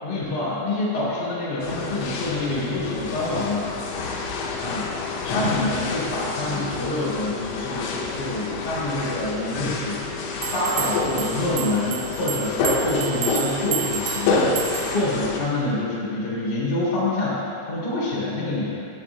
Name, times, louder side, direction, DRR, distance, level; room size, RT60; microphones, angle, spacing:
voice 1, 0.0-3.7 4.6-18.9, left 2 dB, 50° left, -8 dB, 1.2 m, -27 dB
sound 1, 1.6-15.4, left 3 dB, 80° left, 2.5 m, -28 dB
sound 2, 10.4-15.1, right 10 dB, 85° right, 2.9 m, -31 dB
11.0 x 8.3 x 2.3 m, 2.5 s
omnidirectional pair, 5.6 m